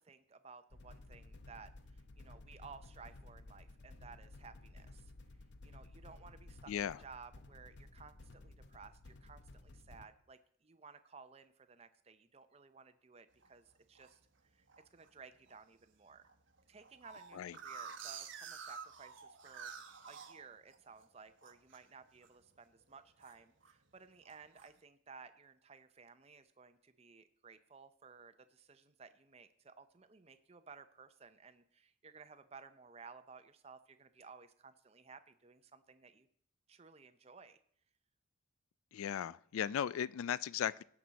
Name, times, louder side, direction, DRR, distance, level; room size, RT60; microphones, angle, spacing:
voice 1, 0.0-5.1 5.6-6.7 7.0-14.2 14.5-14.6 14.9-16.3 16.7-19.7 20.0-36.3 36.7-37.6, right 5 dB, 30° right, 10 dB, 0.6 m, -57 dB
sound 1, 0.7-10.1, left 2 dB, 55° left, 0.7 m, -55 dB
voice 2, 6.7-7.0 17.3-17.6 38.9-40.8, left 9 dB, 90° left, 20 dB, 0.3 m, -37 dB
sound 2, 13.4-14.1 14.7-15.1 15.5-15.6 15.8-15.9 16.2-21.1 21.4-21.8 22.2-22.5 22.8-23.8 24.2-24.7, right 6 dB, 65° right, 1.0 m, -50 dB
17.0 x 6.1 x 4.0 m, 0.64 s
head